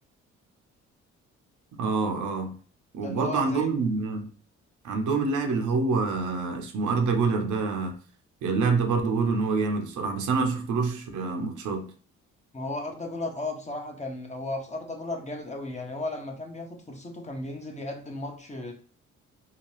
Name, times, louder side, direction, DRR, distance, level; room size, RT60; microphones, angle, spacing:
voice 1, 1.8-2.6 2.9-4.3 4.8-8.0 8.4-11.9, right 4 dB, 70° right, 0.7 m, -26 dB
voice 2, 3.0-3.7 12.5-18.7, left 2 dB, 20° left, 0.9 m, -35 dB
2.8 x 2.3 x 3.0 m
supercardioid pair, 65°, 31 cm